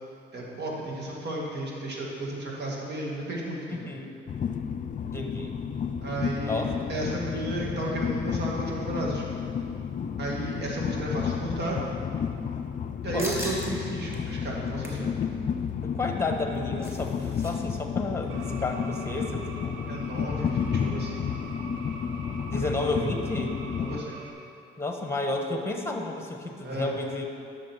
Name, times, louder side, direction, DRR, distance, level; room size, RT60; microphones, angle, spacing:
voice 1, 0.3-3.9 6.0-6.6 6.9-9.2 10.2-11.8 13.0-15.2 19.9-21.3 23.8-24.2 26.6-26.9, right 1 dB, 60° right, -2 dB, 2.2 m, -33 dB
voice 2, 3.7-4.1 5.1-5.6 6.5-6.9 13.1-13.4 15.8-19.9 22.5-23.6 24.8-27.2, left 2 dB, 10° left, 3 dB, 1.2 m, -31 dB
Train, 4.3-24.0, left 7 dB, 40° left, 0.4 m, -31 dB
Beer can open and drink, 13.2-13.7 14.1-14.2 14.6-15.1 16.3-17.5 17.8-17.9 18.2-18.5, equal, 15° right, 1.7 m, -38 dB
sound 1, 18.3-24.3, right 3 dB, 75° right, 0.9 m, -44 dB
11.5 x 6.4 x 4.6 m, 2.6 s
cardioid pair, 90°, 20 cm